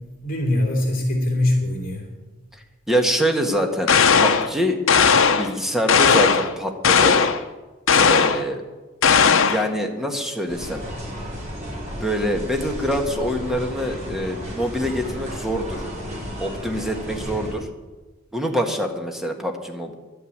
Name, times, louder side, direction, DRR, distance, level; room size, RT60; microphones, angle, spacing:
voice 1, 0.0-2.1, left 1 dB, 45° left, 1 dB, 3.1 m, -23 dB
voice 2, 2.9-4.8 5.3-7.2 7.9-8.6 9.3-10.8 11.7-15.8 16.4-17.7 18.3-19.9, equal, ahead, 3 dB, 1.6 m, -25 dB
sound 1, 3.9-4.5 4.9-5.5 5.9-6.5 6.8-7.4 7.9-8.4 9.0-9.7, left 6 dB, 70° left, 0.8 m, -16 dB
sound 2, 10.5-17.5, equal, 35° right, 4.6 m, -33 dB
11.5 x 9.4 x 8.7 m, 1.2 s
head